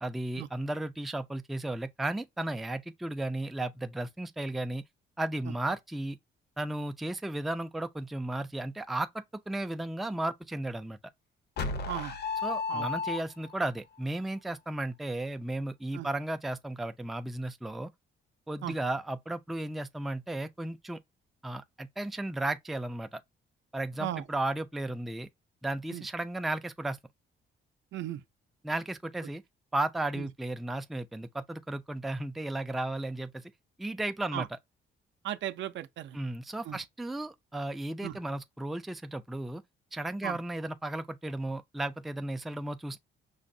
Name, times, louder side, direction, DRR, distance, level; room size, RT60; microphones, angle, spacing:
voice 1, 0.0-4.8 5.2-6.2 6.6-11.0 12.4-17.9 18.5-21.0 21.4-23.2 23.7-25.3 25.6-27.0 28.6-29.4 29.7-33.5 33.8-34.5 36.1-39.6 39.9-43.0, right 1 dB, ahead, 0.3 m, -34 dB
sound 1, 11.6-13.7, left 4 dB, 55° left, 0.7 m, -33 dB
voice 2, 11.9-12.2 12.7-12.9 15.9-16.1 18.6-18.8 24.0-24.2 25.9-26.1 27.9-28.2 30.2-30.3 34.3-34.5 35.2-36.2 36.6-36.8 38.0-38.2 40.2-40.4, right 12 dB, 70° right, 0.5 m, -36 dB
5.4 x 2.0 x 2.5 m
cardioid pair, 90°, 20 cm